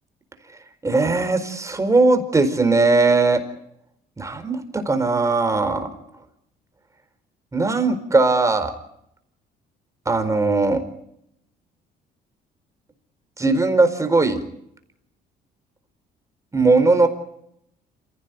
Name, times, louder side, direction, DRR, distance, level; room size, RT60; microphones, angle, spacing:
voice 1, 0.8-3.4 4.2-5.9 7.5-8.7 10.1-10.8 13.4-14.4 16.5-17.1, right 3 dB, 20° right, 8 dB, 4.5 m, -19 dB
28.0 x 17.0 x 9.5 m, 0.77 s
cardioid pair, 110°, 17 cm